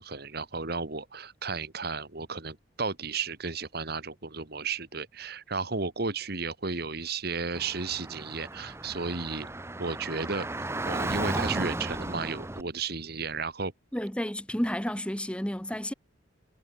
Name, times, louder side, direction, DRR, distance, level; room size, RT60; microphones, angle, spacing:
voice 1, 0.0-9.5 9.8-10.5 10.8-13.7, right 4 dB, 55° right, 1.9 m, -33 dB
Car / Traffic noise roadway noise, 7.6-12.6, right 2 dB, 15° right, 0.9 m, -34 dB
voice 2, 13.9-15.9, equal, 5° left, 1.5 m, -31 dB
head